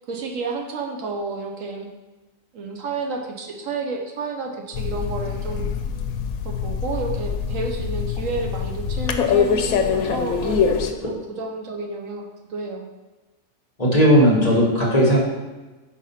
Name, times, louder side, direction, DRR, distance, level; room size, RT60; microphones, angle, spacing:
voice 1, 0.1-1.9 2.5-5.7 6.4-12.9, right 3 dB, 70° right, 2 dB, 1.1 m, -31 dB
sound 1, 4.7-10.9, left 6 dB, 90° left, 1.1 m, -24 dB
voice 2, 13.8-15.2, equal, 30° left, -4 dB, 1.3 m, -16 dB
4.9 x 4.3 x 5.5 m, 1.2 s
omnidirectional pair, 1.5 m